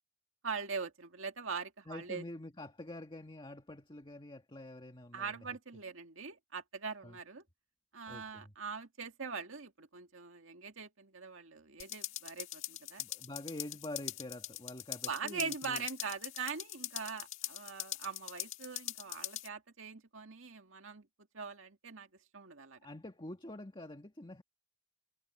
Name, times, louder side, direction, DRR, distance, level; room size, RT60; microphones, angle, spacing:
voice 1, 0.4-2.2 5.1-7.4 7.9-13.0 15.1-21.1 21.3-22.8, right 5 dB, 70° right, 2.1 m, -42 dB
voice 2, 1.9-5.5 7.0-7.2 8.1-8.5 13.0-15.8 22.8-24.4, left 1 dB, 25° left, 1.8 m, -46 dB
sound 1, 11.8-19.5, left 13 dB, 70° left, 1.6 m, -42 dB
head